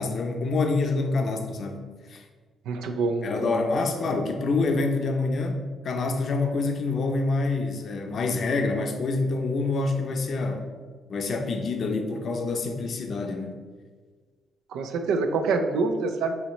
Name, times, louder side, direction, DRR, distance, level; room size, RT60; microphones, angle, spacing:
voice 1, 0.0-2.2 3.2-10.6 11.1-13.6, left 3 dB, 55° left, 5 dB, 0.6 m, -27 dB
voice 2, 2.7-3.6 14.7-16.3, right 4 dB, 85° right, 6 dB, 0.4 m, -26 dB
5.6 x 2.8 x 3.1 m, 1.5 s
cardioid pair, 90°, 0 cm